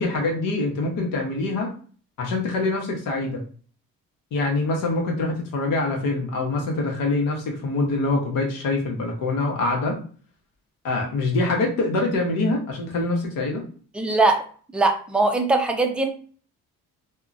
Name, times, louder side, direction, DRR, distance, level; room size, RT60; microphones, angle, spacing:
voice 1, 0.0-1.7 2.2-3.4 4.3-9.9 10.8-13.6, left 2 dB, 80° left, 0 dB, 0.9 m, -24 dB
voice 2, 13.9-14.4 14.7-16.1, right 3 dB, 5° right, 3 dB, 0.4 m, -21 dB
2.8 x 2.2 x 2.5 m, 0.43 s
cardioid pair, 90°, 33 cm